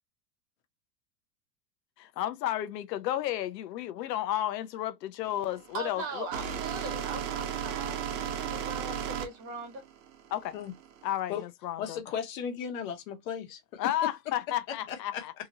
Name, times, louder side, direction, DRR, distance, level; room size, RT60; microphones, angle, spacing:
voice 1, 2.0-6.3 10.3-10.6 11.0-12.0 13.8-15.3, left 12 dB, 90° left, 0.7 m, -32 dB
sound 1, 5.3-11.1, right 8 dB, 50° right, 0.9 m, -35 dB
voice 2, 5.7-9.8, right 3 dB, 30° right, 1.1 m, -40 dB
voice 3, 11.8-14.1 14.7-15.2, left 8 dB, 55° left, 1.0 m, -36 dB
2.8 x 2.3 x 2.9 m
supercardioid pair, 160°, 48 cm